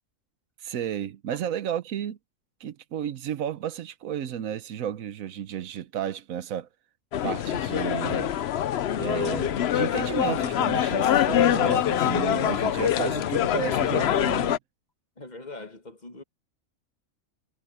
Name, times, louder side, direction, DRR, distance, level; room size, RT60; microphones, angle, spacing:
voice 1, 0.6-2.2 2.6-6.7 7.2-8.3 9.0-14.6, right 9 dB, 85° right, 1.2 m, -32 dB
sound 1, 7.1-14.6, left 10 dB, 60° left, 0.8 m, -24 dB
voice 2, 15.2-16.2, left 2 dB, 35° left, 1.6 m, -42 dB
omnidirectional pair, 1.4 m